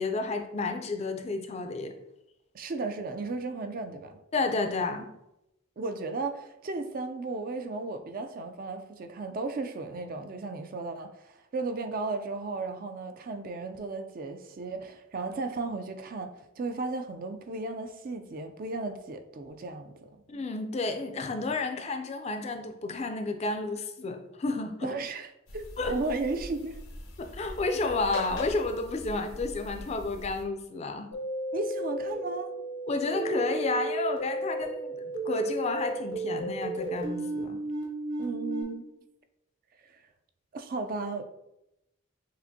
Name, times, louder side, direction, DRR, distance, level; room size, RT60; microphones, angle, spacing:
voice 1, 0.0-1.9 4.3-5.1 20.3-24.9 25.8-25.9 27.2-31.1 32.9-37.6, left 3 dB, 30° left, 0.4 m, -31 dB
voice 2, 2.5-4.2 5.8-20.2 24.8-25.3 25.5-26.8 31.5-32.5 38.2-38.8 39.8-40.0 40.5-41.3, right 3 dB, 45° right, 0.4 m, -35 dB
sound 1, 25.5-30.4, left 2 dB, 85° left, 0.9 m, -41 dB
sound 2, 31.1-38.6, right 1 dB, 75° right, 1.3 m, -33 dB
6.8 x 2.5 x 2.7 m
head